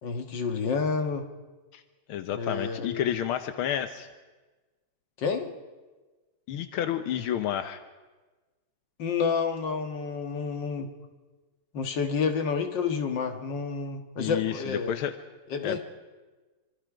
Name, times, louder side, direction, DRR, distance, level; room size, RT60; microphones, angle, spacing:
voice 1, 0.0-1.3 2.4-3.1 5.2-5.5 9.0-10.9 11.7-14.9 15.5-15.8, left 5 dB, 60° left, 5 dB, 2.2 m, -29 dB
voice 2, 2.1-4.1 6.5-7.8 14.2-15.1 15.6-15.8, left 10 dB, 85° left, 9 dB, 1.7 m, -30 dB
25.0 x 25.0 x 5.0 m, 1.3 s
omnidirectional pair, 2.2 m